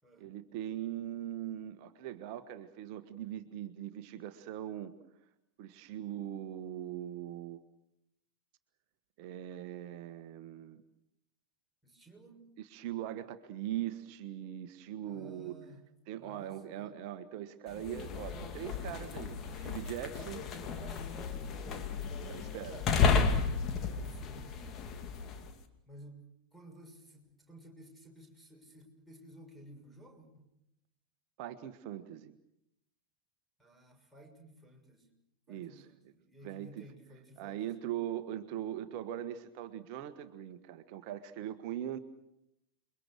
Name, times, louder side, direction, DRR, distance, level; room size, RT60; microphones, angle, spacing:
voice 1, 0.2-4.9 5.6-7.6 9.2-10.8 12.6-15.6 16.1-20.4 22.3-22.8 31.4-32.3 35.5-35.9 36.4-36.9 37.4-42.0, right 11 dB, 45° right, 10 dB, 1.5 m, -41 dB
voice 2, 11.8-12.5 15.0-15.8 16.2-16.9 19.2-19.6 20.1-21.9 22.2-23.1 23.8-24.7 25.9-26.2 26.5-30.5 33.6-35.1 35.5-37.7, right 1 dB, ahead, 4 dB, 6.5 m, -55 dB
sound 1, 17.7-25.5, left 5 dB, 30° left, 2.5 m, -33 dB
29.0 x 23.0 x 6.5 m, 0.82 s
figure-of-eight pair, 90°, 0 cm